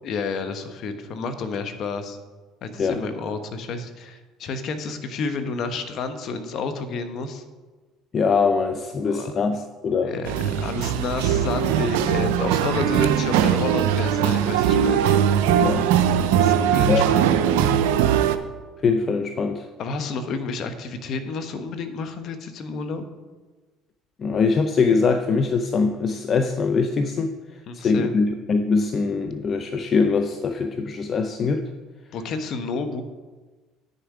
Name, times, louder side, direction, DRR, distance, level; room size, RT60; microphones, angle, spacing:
voice 1, 0.0-2.2 2.6-7.4 9.0-9.4 10.0-15.0 16.4-17.2 19.8-23.0 27.7-28.2 32.1-33.0, left 4 dB, 55° left, 8 dB, 1.1 m, -30 dB
voice 2, 8.1-10.1 15.6-15.9 16.9-17.0 18.8-19.7 24.2-27.3 27.7-31.7, left 4 dB, 40° left, 8 dB, 0.6 m, -22 dB
sound 1, 10.3-18.4, right 9 dB, 80° right, 0.5 m, -20 dB
9.4 x 6.8 x 4.9 m, 1.3 s
supercardioid pair, 75°, 0 cm